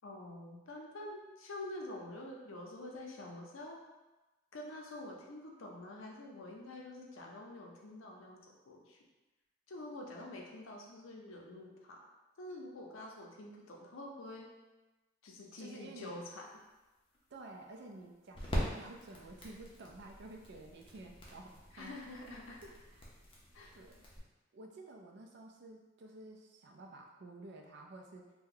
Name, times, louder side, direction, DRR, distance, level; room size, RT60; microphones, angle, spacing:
voice 1, 0.0-3.8 4.5-9.0 9.7-12.1 12.4-14.5 15.2-16.4 21.7-22.6 23.5-23.8, left 1 dB, 75° left, 0 dB, 0.6 m, -47 dB
voice 2, 15.6-16.1 17.3-22.0 22.5-23.1 23.7-24.1 24.5-28.3, right 2 dB, 55° right, 2 dB, 0.4 m, -52 dB
sound 1, 16.3-24.2, equal, 25° left, 0.6 m, -43 dB
2.7 x 2.2 x 3.7 m, 1.1 s
head